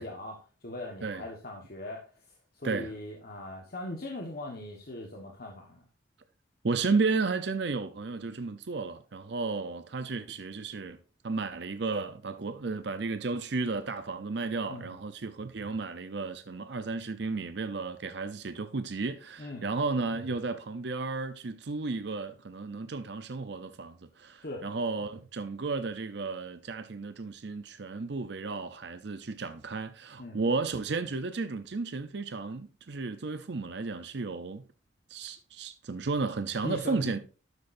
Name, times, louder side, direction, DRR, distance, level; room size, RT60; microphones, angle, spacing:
voice 1, 0.0-2.1 2.5-5.8 14.7-14.9 19.4-19.7 24.4-24.6 30.2-30.4 36.6-37.1, left 2 dB, 55° left, 1.3 m, -40 dB
voice 2, 6.6-11.0 11.2-34.6 35.1-37.2, right 4 dB, 60° right, 0.6 m, -33 dB
12.0 x 8.2 x 2.6 m
head